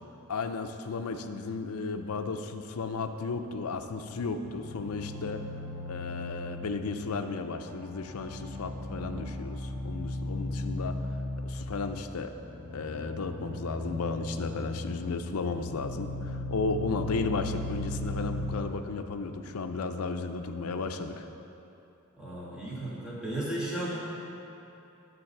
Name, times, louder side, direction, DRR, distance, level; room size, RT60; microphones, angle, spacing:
voice 1, 0.3-5.4 5.9-11.2 11.4-12.3 12.7-21.3, left 4 dB, 85° left, 7 dB, 0.5 m, -34 dB
sound 1, 3.4-18.6, left 1 dB, 60° right, 1.3 m, -37 dB
voice 2, 22.2-24.0, right 1 dB, 5° right, -8 dB, 1.9 m, -34 dB
11.5 x 4.1 x 6.5 m, 2.9 s
head